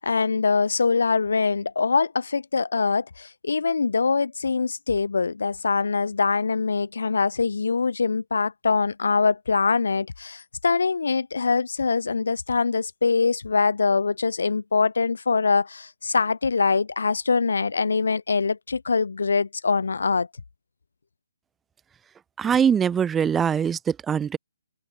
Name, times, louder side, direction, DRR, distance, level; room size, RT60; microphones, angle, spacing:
voice 1, 0.0-20.3, left 4 dB, 85° left, 2.1 m, -23 dB
voice 2, 22.4-24.4, right 7 dB, 5° right, 0.8 m, -22 dB
hypercardioid pair, 175°, 0 cm